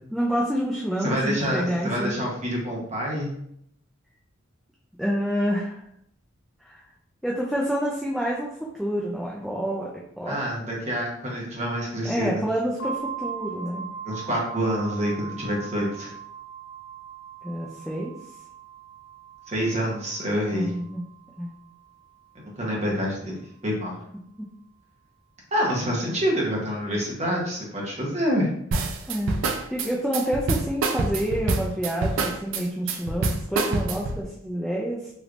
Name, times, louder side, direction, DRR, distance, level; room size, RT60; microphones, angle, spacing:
voice 1, 0.1-2.2 5.0-5.8 6.6-6.8 7.2-9.9 10.2-10.4 12.0-13.9 17.4-18.1 20.5-21.0 21.4-21.5 24.4-24.5 29.1-29.3 29.7-35.1, equal, ahead, -4 dB, 0.3 m, -28 dB
voice 2, 1.0-3.3 10.3-12.3 14.0-16.1 19.5-20.7 22.3-23.3 23.6-23.9 25.5-28.5, equal, 35° right, -3 dB, 0.9 m, -27 dB
sound 1, 12.8-22.4, right 6 dB, 80° left, 0.4 m, -40 dB
sound 2, 28.7-34.2, right 3 dB, 75° right, 0.4 m, -26 dB
3.2 x 3.1 x 2.5 m, 0.72 s
head